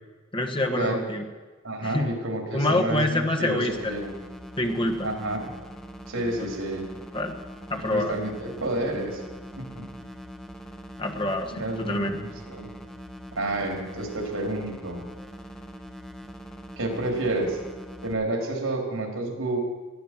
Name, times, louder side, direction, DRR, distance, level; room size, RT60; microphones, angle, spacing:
voice 1, 0.3-1.3 1.8-2.1 2.5-3.9 4.6-5.1 7.1-7.3 7.7-8.2 11.0-12.1, left 1 dB, 25° left, 3 dB, 1.4 m, -26 dB
voice 2, 1.6-4.1 5.0-5.6 6.1-6.9 7.7-9.2 9.6-9.9 11.6-12.7 13.3-15.0 16.8-17.6 18.0-19.6, right 2 dB, 85° right, 3 dB, 3.6 m, -30 dB
sound 1, 3.7-18.1, equal, ahead, 1.2 m, -42 dB
18.5 x 12.5 x 6.0 m, 1.3 s
head